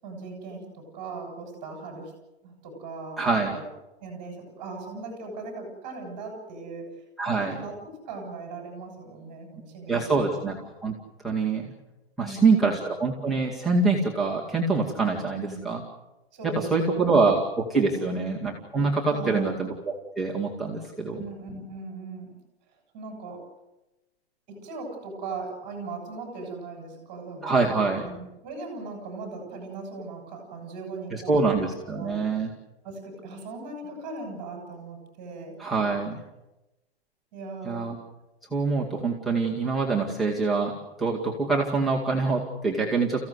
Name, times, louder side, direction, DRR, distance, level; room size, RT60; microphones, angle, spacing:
voice 1, 0.0-2.1 2.4-3.7 4.0-6.9 7.4-10.5 12.2-12.9 15.3-15.6 16.3-17.2 17.9-18.3 19.1-19.6 21.1-22.4 22.9-23.4 24.5-27.6 27.9-31.5 31.8-32.2 32.8-35.6 37.3-37.9, right 3 dB, 25° right, 3 dB, 7.4 m, -39 dB
voice 2, 3.2-3.6 7.2-7.6 9.9-11.0 11.2-11.7 12.2-15.8 16.4-21.2 27.4-28.0 31.1-32.5 35.6-36.2 37.6-38.0 38.5-43.3, right 4 dB, ahead, -2 dB, 2.2 m, -25 dB
29.5 x 16.0 x 8.1 m, 1.0 s
hypercardioid pair, 175°, 32 cm